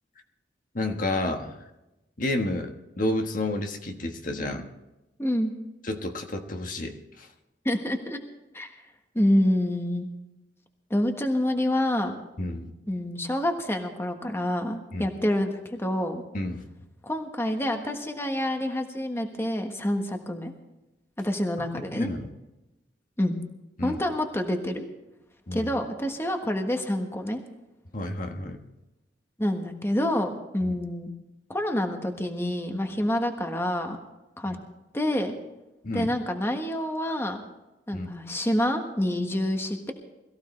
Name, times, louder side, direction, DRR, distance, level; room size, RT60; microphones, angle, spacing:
voice 1, 0.7-1.5 2.2-2.7 3.0-4.7 5.8-7.3 12.4-12.7 14.9-15.1 16.3-16.6 21.9-22.3 23.8-24.0 25.5-25.7 27.9-28.6 30.6-30.7 34.5-34.6 35.8-36.1 37.9-38.1, left 1 dB, 50° left, 4 dB, 1.4 m, -30 dB
voice 2, 5.2-5.5 7.6-8.2 8.5-8.7 9.1-10.1 10.9-12.2 12.9-16.2 17.0-20.5 21.2-22.1 23.2-23.4 23.8-24.8 25.5-27.4 29.4-31.1 31.5-34.0 34.4-34.6 34.9-35.3 35.9-37.4 37.9-39.9, left 1 dB, 15° left, 4 dB, 1.4 m, -27 dB
22.0 x 15.0 x 3.3 m, 0.99 s
head